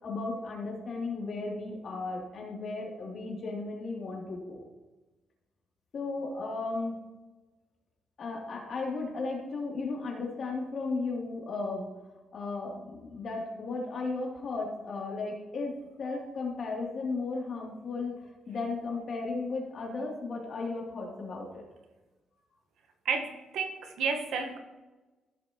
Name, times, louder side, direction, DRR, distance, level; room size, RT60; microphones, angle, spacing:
voice 1, 0.0-4.6 5.9-7.0 8.2-11.9 12.3-18.1 18.5-21.6, left 3 dB, 55° left, -1 dB, 3.0 m, -35 dB
voice 2, 23.0-24.6, right 5 dB, 75° right, 4 dB, 1.4 m, -31 dB
15.5 x 6.9 x 3.1 m, 1.2 s
cardioid pair, 100°, 0 cm